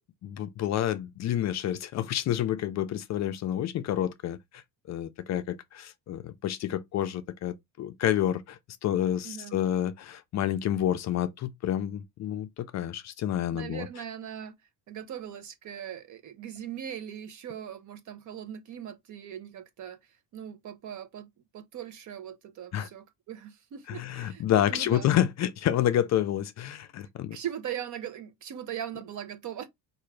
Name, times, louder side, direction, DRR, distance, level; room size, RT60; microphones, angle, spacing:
voice 1, 0.2-4.6 4.9-13.9 22.7-22.9 23.9-27.4, left 11 dB, 45° left, 0.4 m, -29 dB
voice 2, 9.2-9.6 13.5-14.5 14.9-25.1 27.3-29.8, right 9 dB, 50° right, 0.7 m, -40 dB
4.7 x 2.5 x 3.1 m
cardioid pair, 170°, 39 cm